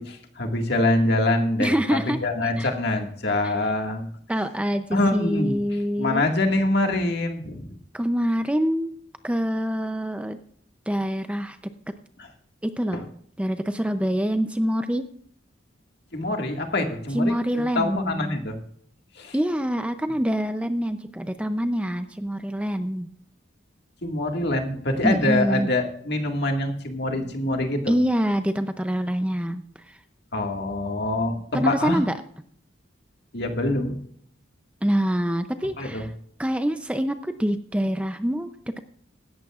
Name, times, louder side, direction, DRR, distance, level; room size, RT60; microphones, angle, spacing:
voice 1, 0.0-1.7 2.1-4.1 4.9-5.6 6.0-7.7 12.2-12.3 12.9-13.0 16.1-17.4 17.8-18.6 19.2-19.4 24.0-27.9 30.3-32.0 33.3-34.0 35.8-36.1, left 2 dB, 55° left, 3 dB, 1.9 m, -25 dB
voice 2, 1.6-2.2 2.6-2.7 3.4-3.5 4.3-6.2 7.9-8.9 9.2-10.4 10.9-11.6 12.6-13.0 13.4-15.1 17.1-18.4 19.3-23.1 25.0-25.7 27.9-30.0 31.5-32.1 34.8-36.1 36.4-38.8, equal, 5° right, 9 dB, 0.5 m, -25 dB
17.0 x 13.5 x 2.4 m, 0.63 s
head